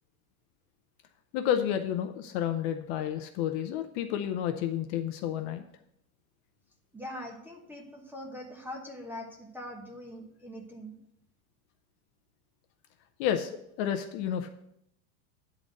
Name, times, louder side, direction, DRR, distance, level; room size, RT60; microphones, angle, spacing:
voice 1, 1.3-5.6 13.2-13.5 13.8-14.5, left 10 dB, 50° left, 7 dB, 0.6 m, -30 dB
voice 2, 6.9-11.0, left 1 dB, 5° right, 1 dB, 1.0 m, -42 dB
9.6 x 3.9 x 6.4 m, 0.76 s
supercardioid pair, 150°, 43 cm